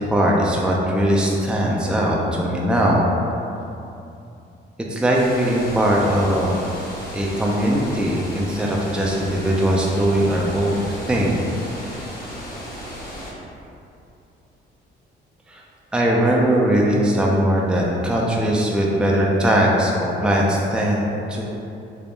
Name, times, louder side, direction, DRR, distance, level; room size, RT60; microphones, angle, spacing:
voice 1, 0.1-3.1 4.9-6.5 7.1-10.8 11.1-11.4 15.5-15.6 15.9-21.4, right 1 dB, 5° right, -3 dB, 0.5 m, -20 dB
sound 1, 5.1-13.3, equal, 55° left, 1.2 m, -35 dB
3.5 x 2.3 x 3.9 m, 2.7 s
cardioid pair, 90°, 20 cm